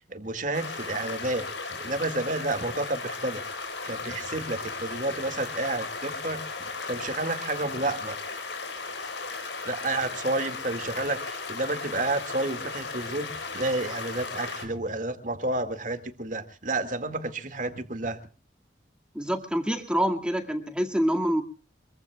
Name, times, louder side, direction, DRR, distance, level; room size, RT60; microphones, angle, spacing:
voice 1, 0.1-3.5 3.8-6.6 6.9-8.2 9.6-18.2, right 2 dB, 45° right, 9 dB, 2.0 m, -30 dB
sound 1, 0.5-14.7, left 4 dB, 85° left, 4.5 m, -36 dB
voice 2, 19.1-21.4, equal, 5° right, 2 dB, 2.0 m, -26 dB
24.5 x 23.5 x 2.3 m, 0.36 s
head